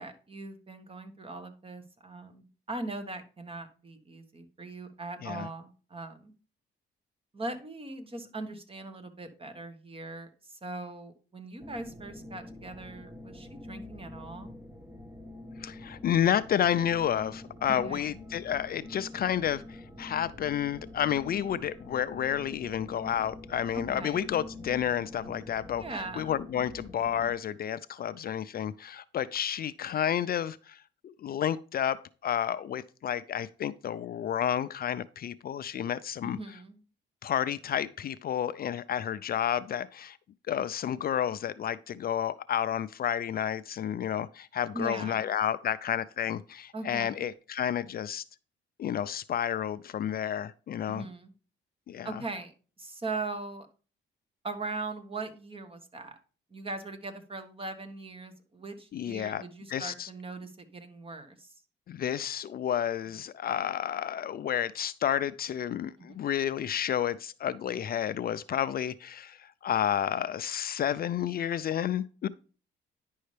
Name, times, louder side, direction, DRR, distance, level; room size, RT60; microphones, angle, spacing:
voice 1, 0.0-6.3 7.3-14.5 17.7-18.2 23.7-24.3 25.7-26.4 36.2-36.8 44.7-45.3 46.7-47.3 50.9-51.3 52.0-52.5 52.8-53.7 54.4-56.2 56.5-61.6 66.0-66.3, right 3 dB, 25° right, 1.4 m, -40 dB
sound 1, 11.6-27.4, left 2 dB, 10° right, 1.1 m, -46 dB
voice 2, 15.6-25.8 26.2-36.4 37.2-40.2 40.5-48.2 48.8-51.1 51.9-52.1 58.9-59.4 59.7-60.1 61.9-72.3, left 9 dB, 50° left, 0.4 m, -31 dB
10.0 x 5.5 x 3.3 m
cardioid pair, 90°, 20 cm